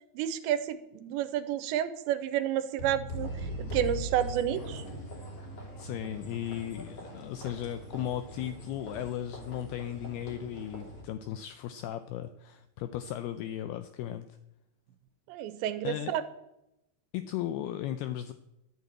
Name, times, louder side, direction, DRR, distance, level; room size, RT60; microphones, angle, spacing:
voice 1, 0.1-4.8 15.3-16.2, right 10 dB, 85° right, 12 dB, 3.0 m, -30 dB
sound 1, 2.8-5.3, right 1 dB, 20° left, 4.9 m, -37 dB
sound 2, 3.1-11.0, equal, 35° left, 3.6 m, -45 dB
voice 2, 5.8-14.3 15.8-16.2 17.1-18.3, left 11 dB, 85° left, 11 dB, 2.2 m, -36 dB
12.0 x 8.3 x 8.7 m, 0.89 s
omnidirectional pair, 5.2 m